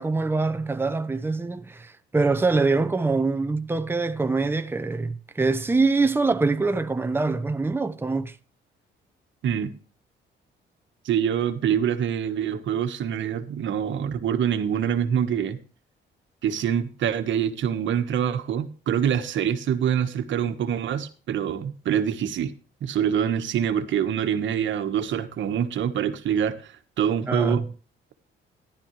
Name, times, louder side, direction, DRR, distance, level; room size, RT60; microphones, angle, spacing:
voice 1, 0.0-8.4 27.3-27.6, right 3 dB, 10° right, 0.9 m, -24 dB
voice 2, 11.0-15.6 16.4-22.5 22.8-27.6, right 8 dB, 70° right, 1.5 m, -25 dB
13.5 x 11.5 x 3.3 m
cardioid pair, 90°, 20 cm